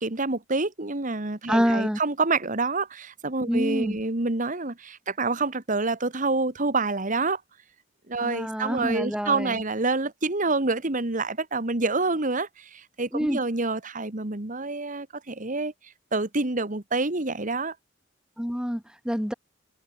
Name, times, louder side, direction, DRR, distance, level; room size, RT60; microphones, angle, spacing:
voice 1, 0.0-7.4 8.1-15.7 16.1-17.7, right 3 dB, 40° right, 1.8 m, -27 dB
voice 2, 1.5-2.0 3.5-4.0 8.2-9.6 13.1-13.4 18.4-19.3, equal, 5° right, 3.8 m, -27 dB
head